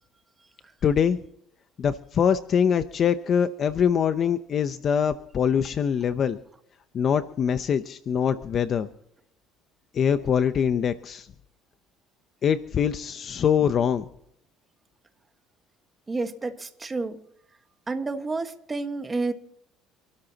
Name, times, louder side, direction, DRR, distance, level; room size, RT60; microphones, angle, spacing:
voice 1, 0.8-1.2 1.8-6.4 6.9-8.9 9.9-11.3 12.4-14.1, left 7 dB, 40° left, 0.7 m, -23 dB
voice 2, 16.1-17.2 17.9-19.3, right 3 dB, 20° right, 1.5 m, -30 dB
27.5 x 13.0 x 2.9 m
cardioid pair, 130°, 0 cm